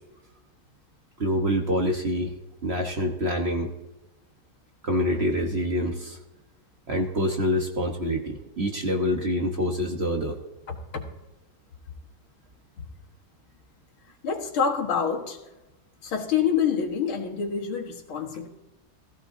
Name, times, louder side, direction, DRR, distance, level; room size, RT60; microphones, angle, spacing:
voice 1, 1.2-2.3 2.6-3.7 4.8-6.2 6.9-10.4, equal, 40° right, 2 dB, 1.1 m, -26 dB
voice 2, 10.7-11.0 12.8-12.9 14.2-15.4 16.0-18.5, left 7 dB, 90° left, 1 dB, 2.4 m, -27 dB
17.0 x 15.0 x 2.7 m, 1.0 s
omnidirectional pair, 2.2 m